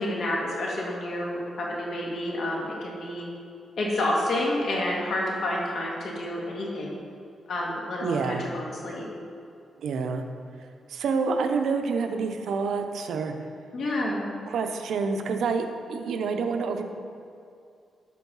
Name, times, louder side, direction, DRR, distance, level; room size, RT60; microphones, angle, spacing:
voice 1, 0.0-3.2 3.8-7.0 7.5-9.1 13.7-14.3, left 1 dB, 65° left, -3 dB, 2.2 m, -29 dB
voice 2, 8.0-8.5 9.8-10.2 10.9-13.3 14.5-16.8, right 5 dB, 80° right, 5 dB, 0.8 m, -28 dB
13.0 x 4.6 x 5.6 m, 2.5 s
wide cardioid pair, 125°, 0 cm